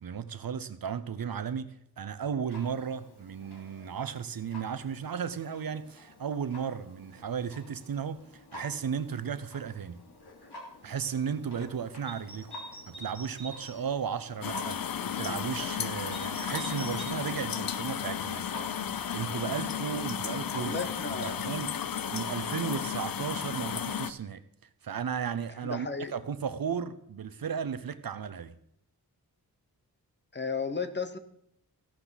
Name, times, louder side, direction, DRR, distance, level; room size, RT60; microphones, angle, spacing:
voice 1, 0.0-8.2 8.5-10.0 10.8-12.5 12.9-14.8 15.1-18.5 19.1-21.7 22.1-24.4 24.8-28.5, right 7 dB, 65° right, 0.8 m, -35 dB
Clock, 2.5-21.0, left 1 dB, 85° left, 2.9 m, -50 dB
sound 1, 12.0-13.7 16.1-17.0, right 1 dB, 15° right, 4.3 m, -44 dB
sound 2, 14.4-24.1, left 8 dB, 60° left, 0.7 m, -34 dB
voice 2, 20.6-21.5 25.6-26.1 30.3-31.2, left 4 dB, 30° left, 1.1 m, -34 dB
15.5 x 12.0 x 4.1 m
wide cardioid pair, 120°, 38 cm